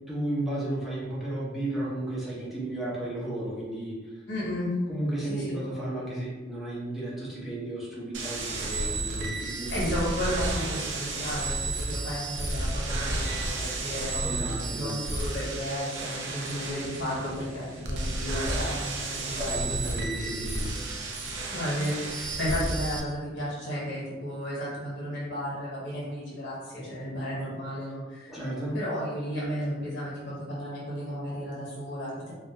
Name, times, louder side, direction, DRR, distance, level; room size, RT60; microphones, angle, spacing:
voice 1, 0.1-4.2 4.9-9.7 14.2-14.9 19.4-20.8 28.3-28.8, right 1 dB, ahead, -8 dB, 0.6 m, -33 dB
voice 2, 4.3-4.8 5.2-5.6 9.6-13.3 13.6-14.3 14.7-19.6 21.5-28.3 28.7-32.3, equal, 65° left, -7 dB, 0.9 m, -33 dB
sound 1, 8.1-23.0, right 2 dB, 65° right, 0.4 m, -32 dB
2.3 x 2.1 x 2.8 m, 1.2 s
head